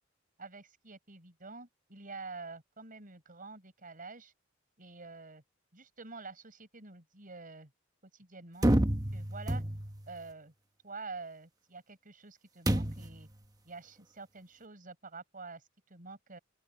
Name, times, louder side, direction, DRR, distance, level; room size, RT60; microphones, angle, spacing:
voice 1, 0.4-4.3 4.8-5.4 5.7-7.7 8.0-8.7 9.1-9.6 10.1-10.5 10.8-13.3 13.6-16.4, right 3 dB, 45° right, 5.7 m, -47 dB
sound 1, 8.6-10.1 12.7-13.2, right 1 dB, 20° right, 1.2 m, -29 dB
open air
head